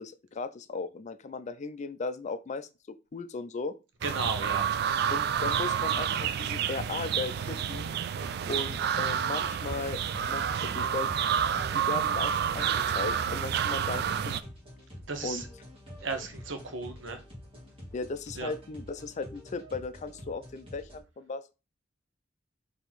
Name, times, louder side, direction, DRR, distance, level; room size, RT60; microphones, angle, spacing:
voice 1, 0.0-3.8 5.1-7.9 8.5-10.0 10.3-11.1 11.7-14.4 15.2-15.4 17.9-21.5, left 4 dB, 40° left, 0.4 m, -37 dB
sound 1, 4.0-14.4, right 8 dB, 55° right, 0.3 m, -29 dB
voice 2, 4.0-4.7 15.1-15.5 16.0-17.2 18.3-18.5, right 4 dB, 80° right, 0.9 m, -34 dB
sound 2, 7.2-21.0, equal, 30° right, 1.8 m, -48 dB
4.5 x 2.8 x 3.9 m
head